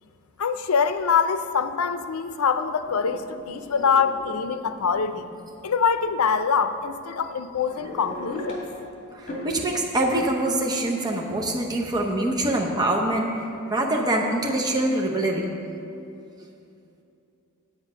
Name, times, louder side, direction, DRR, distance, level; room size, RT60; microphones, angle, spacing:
voice 1, 0.4-5.3 5.6-8.6, left 6 dB, 85° left, 10 dB, 0.5 m, -24 dB
sound 1, 2.8-5.3 5.9-6.1 6.8-6.9 7.4-8.8 9.1-9.5, left 1 dB, 40° left, 2.3 m, -38 dB
voice 2, 9.1-15.5, right 1 dB, 20° right, 0 dB, 0.8 m, -24 dB
8.9 x 8.0 x 5.6 m, 2.6 s
head